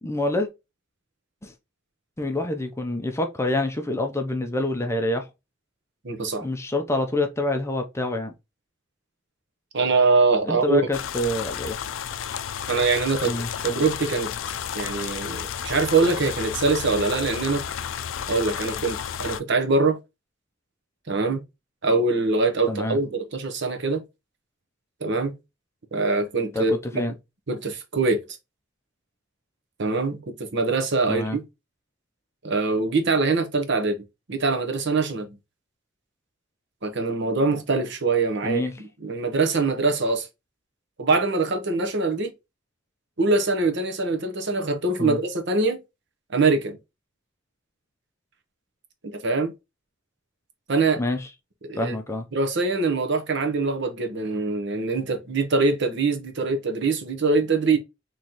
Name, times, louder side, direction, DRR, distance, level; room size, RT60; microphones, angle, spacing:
voice 1, 0.0-0.5 1.4-1.5 2.2-5.3 6.4-8.3 10.5-11.8 13.2-13.9 22.7-23.0 26.5-27.1 31.1-31.4 38.4-38.8 45.0-45.2 51.0-51.3 51.7-52.2, left 1 dB, 15° left, 0.5 m, -27 dB
voice 2, 6.0-6.4 9.7-10.8 12.7-14.3 14.7-17.6 18.3-20.0 21.1-21.4 21.8-24.0 25.0-25.3 25.9-27.0 27.5-28.2 29.8-31.4 32.4-35.4 36.8-38.6 39.0-40.3 41.0-42.3 43.2-45.8 46.3-46.8 49.0-49.5 50.7-51.0 51.6-52.0 52.3-57.8, right 3 dB, 65° right, 1.0 m, -23 dB
sound 1, 10.9-19.4, left 8 dB, 75° left, 0.4 m, -32 dB
4.0 x 3.1 x 2.9 m
head